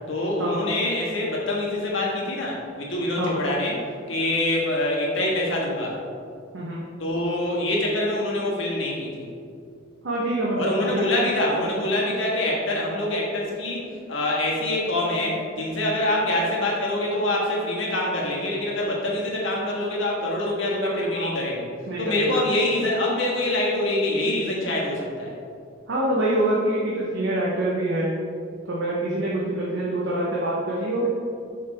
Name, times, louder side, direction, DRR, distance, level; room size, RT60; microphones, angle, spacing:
voice 1, 0.1-3.8 4.1-6.0 7.0-9.3 10.5-21.7 22.0-25.3, left 1 dB, 75° left, -3 dB, 1.6 m, -25 dB
voice 2, 10.0-11.0 12.0-12.1 20.7-21.4 21.9-22.4 25.9-28.2 28.7-31.1, right 1 dB, 65° right, -5 dB, 0.9 m, -26 dB
6.1 x 5.9 x 3.5 m, 2.4 s
head